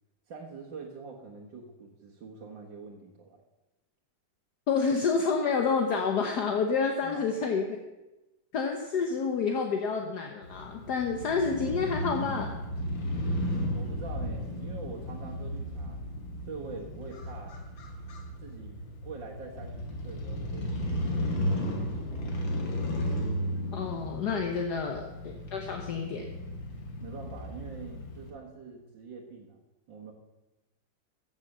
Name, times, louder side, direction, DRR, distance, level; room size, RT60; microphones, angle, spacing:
voice 1, 0.3-3.4 7.0-7.3 13.8-16.0 16.5-17.6 18.4-22.1 27.0-29.6 29.9-30.1, right 4 dB, 75° right, -4 dB, 2.1 m, -45 dB
voice 2, 4.7-7.8 8.5-12.5 23.7-26.3, left 5 dB, 65° left, 3 dB, 1.5 m, -29 dB
Crow / Motorcycle, 10.4-28.3, equal, 90° left, 2.8 m, -34 dB
15.0 x 7.3 x 6.6 m, 1.0 s
omnidirectional pair, 2.0 m